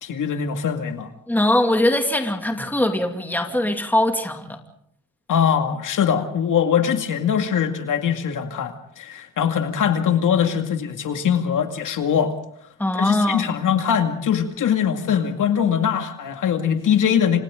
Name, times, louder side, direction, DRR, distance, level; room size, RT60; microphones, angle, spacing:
voice 1, 0.0-1.1 5.3-12.3 13.0-17.4, left 8 dB, 75° left, 5 dB, 2.3 m, -22 dB
voice 2, 1.3-4.6 12.8-13.5, left 1 dB, 5° left, 4 dB, 2.5 m, -21 dB
30.0 x 26.0 x 3.9 m, 0.69 s
cardioid pair, 130°, 31 cm